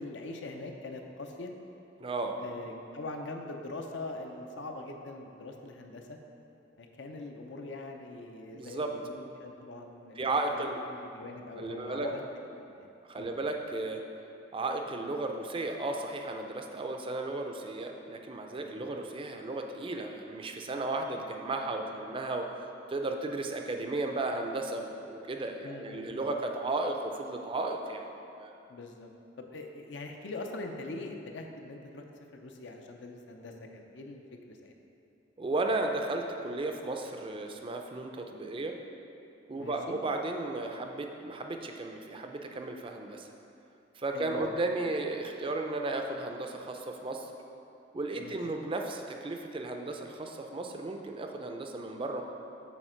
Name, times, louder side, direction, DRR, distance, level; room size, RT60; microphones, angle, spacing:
voice 1, 0.0-1.5 2.4-6.2 6.8-12.2 12.5-12.9 13.1-13.3 18.6-18.9 25.6-26.3 28.7-29.1 29.4-32.0 32.3-34.7 39.6-40.0 44.1-44.5 48.2-48.4, left 2 dB, 70° left, 3 dB, 0.6 m, -42 dB
voice 2, 2.0-2.4 8.5-9.0 10.2-10.8 11.6-12.1 13.1-14.0 14.5-22.5 22.9-28.1 28.4-28.5 35.4-38.8 39.5-43.3 44.0-47.3 47.9-52.2, right 2 dB, 30° right, 4 dB, 0.4 m, -34 dB
7.1 x 4.3 x 4.4 m, 2.7 s
head